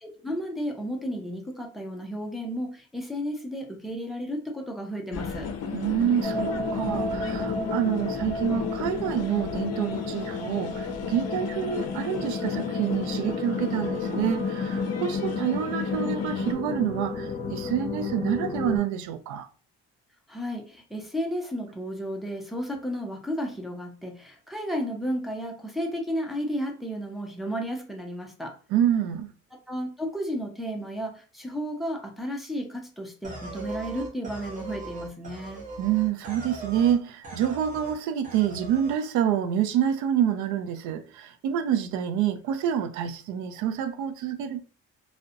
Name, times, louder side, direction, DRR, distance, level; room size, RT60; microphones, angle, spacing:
voice 1, 0.0-5.5 20.3-28.6 29.7-35.7, equal, ahead, 0.3 m, -33 dB
sound 1, 5.1-16.5, left 5 dB, 60° left, 0.5 m, -33 dB
voice 2, 5.7-19.5 28.7-29.3 35.8-44.6, right 9 dB, 85° right, 0.5 m, -27 dB
sound 2, 6.2-18.8, left 3 dB, 25° left, 0.7 m, -33 dB
sound 3, 33.2-37.0 37.2-38.0 38.2-39.0, right 3 dB, 30° right, 0.7 m, -39 dB
2.4 x 2.1 x 2.5 m
cardioid pair, 150°, 29 cm